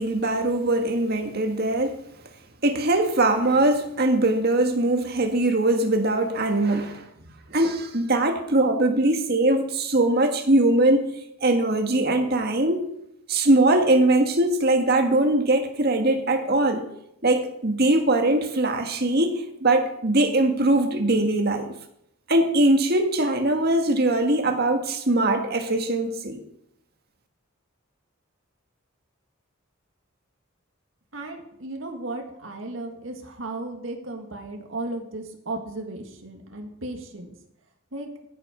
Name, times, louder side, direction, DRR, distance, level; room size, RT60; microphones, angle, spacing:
voice 1, 0.0-2.0 2.6-7.0 7.5-11.1 11.4-12.8 13.3-16.8 17.2-21.7 22.3-26.4, right 2 dB, 50° right, 5 dB, 1.7 m, -21 dB
voice 2, 31.1-37.3 37.9-38.1, right 2 dB, 65° right, 3 dB, 2.0 m, -35 dB
14.5 x 8.5 x 5.1 m, 0.77 s
head